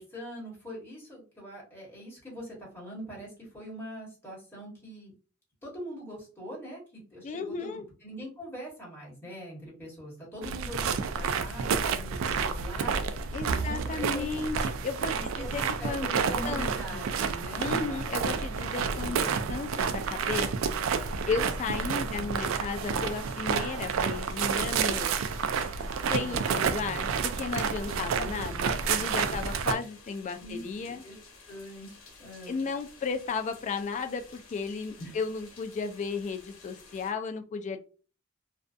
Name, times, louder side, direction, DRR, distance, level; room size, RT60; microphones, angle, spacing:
voice 1, 0.0-5.1 5.6-14.3 15.0-18.3 18.8-19.5 21.6-22.5 26.1-27.0 27.9-29.4 30.4-31.2 31.5-31.9 32.2-32.6 35.0-35.2, equal, 10° left, -5 dB, 1.2 m, -43 dB
voice 2, 7.2-7.8 13.3-14.6 14.8-17.0 17.5-25.1 26.1-31.0 32.5-37.8, left 4 dB, 35° left, 7 dB, 0.3 m, -34 dB
sound 1, 10.4-29.7, right 6 dB, 75° right, 0.3 m, -30 dB
sound 2, 22.4-37.1, left 3 dB, 80° left, 0.9 m, -53 dB
2.5 x 2.2 x 2.4 m, 0.36 s
head